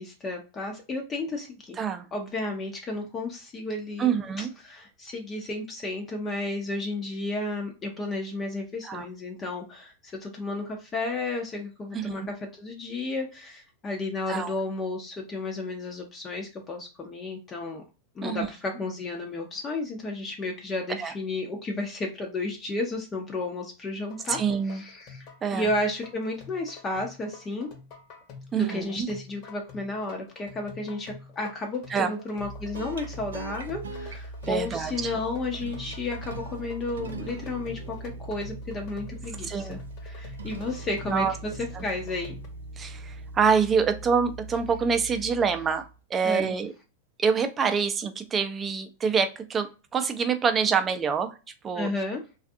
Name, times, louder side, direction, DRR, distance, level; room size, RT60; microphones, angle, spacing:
voice 1, 0.0-1.8 2.1-17.8 18.2-24.4 24.7-27.7 28.6-42.4 46.2-46.6 51.7-52.2, left 2 dB, 25° left, 2 dB, 0.5 m, -33 dB
voice 2, 1.8-2.1 4.0-4.5 8.8-9.1 11.9-12.3 14.3-14.5 18.2-18.5 21.0-21.1 24.3-24.8 25.4-25.7 28.5-29.1 31.9-32.1 34.5-35.1 39.4-39.8 41.1-41.3 41.7-41.8 42.8-45.8 46.1-46.7 47.2-51.3 51.6-51.9, right 6 dB, 25° right, 8 dB, 0.5 m, -26 dB
sound 1, 24.1-42.5, left 5 dB, 50° left, 0.9 m, -47 dB
sound 2, 32.4-46.0, right 2 dB, 90° right, 0.4 m, -40 dB
2.5 x 2.4 x 2.6 m, 0.32 s
hypercardioid pair, 115°, 0 cm